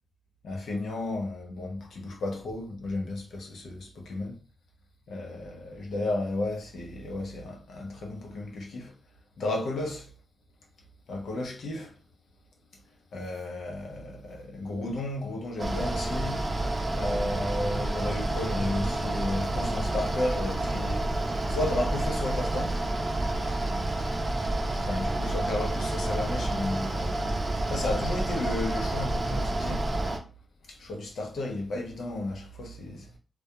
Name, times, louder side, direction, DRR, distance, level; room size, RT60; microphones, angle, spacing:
voice 1, 0.4-4.4 5.1-8.9 9.4-10.1 11.1-12.0 13.1-16.5 16.9-21.0 21.5-22.8 24.7-29.9 30.7-33.2, left 2 dB, 90° left, 0.6 m, -33 dB
Mechanical fan, 15.6-30.2, right 2 dB, 35° right, 0.5 m, -29 dB
2.3 x 2.2 x 2.8 m
cardioid pair, 85°, 0 cm